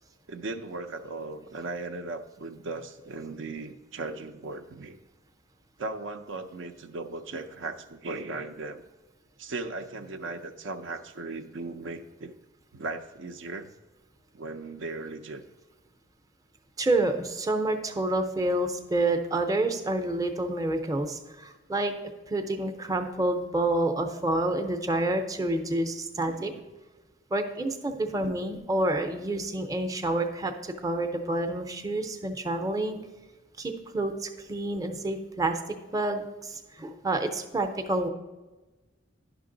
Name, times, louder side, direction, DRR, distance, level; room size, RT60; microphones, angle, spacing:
voice 1, 0.3-5.0 5.8-8.8 9.4-12.4 12.7-13.7 14.3-15.4 26.3-26.4 27.9-28.0, right 3 dB, 70° right, 7 dB, 0.5 m, -37 dB
voice 2, 16.8-21.9 22.3-26.5 27.3-33.0 33.6-35.6 35.9-38.1, right 2 dB, 20° right, 6 dB, 0.6 m, -28 dB
10.0 x 5.9 x 3.8 m, 1.2 s
head